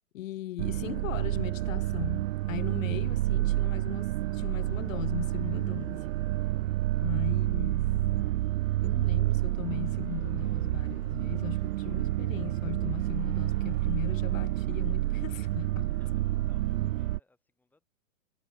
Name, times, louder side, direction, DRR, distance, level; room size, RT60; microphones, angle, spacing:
voice 1, 0.1-6.1 7.0-7.9 8.8-15.9, left 14 dB, 80° left, 0.6 m, -39 dB
sound 1, 0.6-17.2, right 16 dB, 75° right, 0.5 m, -29 dB
sound 2, 2.6-8.6, left 20 dB, 45° left, 7.6 m, -64 dB
voice 2, 6.7-7.0 15.7-17.8, left 2 dB, 5° left, 7.6 m, -68 dB
hypercardioid pair, 160°, 39 cm